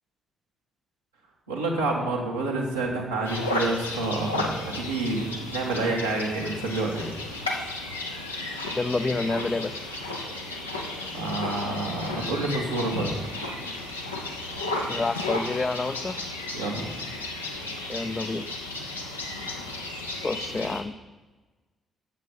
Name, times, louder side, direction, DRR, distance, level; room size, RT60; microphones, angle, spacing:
voice 1, 1.5-7.1 11.1-13.1 16.5-16.8, right 2 dB, 85° right, -4 dB, 1.5 m, -28 dB
sound 1, 3.2-20.8, left 2 dB, 85° left, 0.8 m, -33 dB
voice 2, 8.7-9.8 14.9-16.2 17.9-18.5 20.2-20.9, left 3 dB, 30° left, 13 dB, 0.5 m, -28 dB
9.2 x 7.5 x 5.5 m, 1.3 s
figure-of-eight pair, 40°, 0 cm